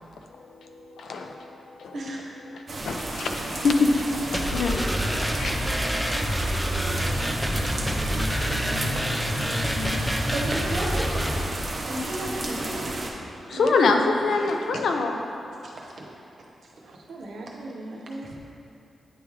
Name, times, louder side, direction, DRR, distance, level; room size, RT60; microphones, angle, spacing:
voice 1, 0.3-2.0 2.5-5.8 7.1-10.1 13.5-15.2, left 3 dB, 85° left, 0.5 m, -27 dB
sound 1, 2.7-13.1, right 2 dB, 40° right, 0.6 m, -33 dB
sound 2, 4.3-11.4, equal, ahead, 0.4 m, -27 dB
voice 2, 9.5-9.8 13.5-14.1 16.0-16.1 16.9-18.3, right 2 dB, 90° right, 0.7 m, -38 dB
voice 3, 10.3-11.2 11.8-12.9 15.6-15.9, right 1 dB, 65° right, 0.9 m, -32 dB
9.3 x 3.5 x 3.2 m
wide cardioid pair, 150°, 0 cm